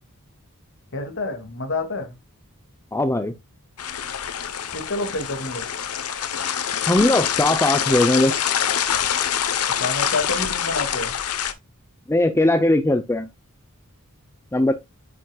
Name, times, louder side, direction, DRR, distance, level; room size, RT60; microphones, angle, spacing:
voice 1, 0.9-2.2 4.7-5.7 9.8-11.1, left 3 dB, 60° left, 2.4 m, -28 dB
voice 2, 2.9-3.3 6.9-8.5 12.1-13.3 14.5-14.7, left 1 dB, 10° left, 0.6 m, -19 dB
sound 1, 3.8-11.5, left 9 dB, 85° left, 1.0 m, -25 dB
9.4 x 6.3 x 2.3 m
head